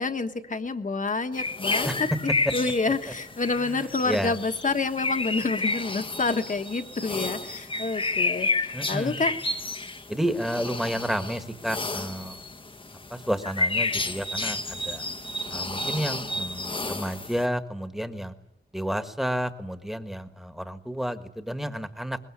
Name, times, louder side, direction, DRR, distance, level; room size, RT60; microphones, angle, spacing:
voice 1, 0.0-9.3, left 3 dB, 45° left, 7 dB, 1.4 m, -28 dB
sound 1, 1.3-17.4, left 2 dB, 30° left, 1.0 m, -31 dB
voice 2, 8.7-9.2 10.1-12.4 13.1-15.0 15.5-18.3 18.7-22.2, equal, ahead, 9 dB, 1.5 m, -31 dB
22.0 x 21.0 x 9.8 m, 0.92 s
wide cardioid pair, 125°, 19 cm